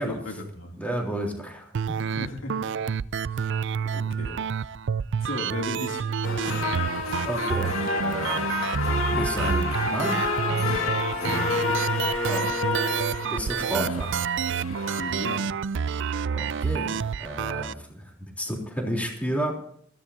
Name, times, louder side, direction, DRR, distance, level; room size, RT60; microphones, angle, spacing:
voice 1, 0.0-0.8 2.1-3.0 3.3-3.7 3.9-4.4 5.2-6.1 11.2-11.6 15.0-15.6, left 1 dB, 70° left, 1 dB, 2.8 m, -36 dB
voice 2, 0.8-1.9 7.2-7.7 8.0-8.5 9.1-10.2 12.3-12.6 13.3-14.2 16.3-19.5, right 1 dB, 5° left, 0 dB, 3.5 m, -31 dB
sound 1, 1.7-17.7, right 6 dB, 60° right, 0.4 m, -29 dB
sound 2, 6.2-15.4, left 3 dB, 90° left, 2.3 m, -29 dB
20.5 x 15.5 x 2.8 m, 0.63 s
head